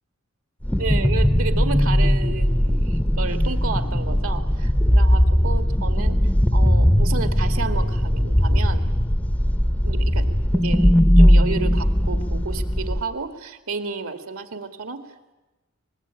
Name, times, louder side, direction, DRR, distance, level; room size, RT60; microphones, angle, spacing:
sound 1, 0.6-13.0, equal, 10° left, 0.8 m, -19 dB
voice 1, 0.8-6.2 6.5-8.8 9.8-15.0, right 4 dB, 75° right, 8 dB, 2.0 m, -32 dB
25.0 x 20.0 x 8.9 m, 1.1 s
head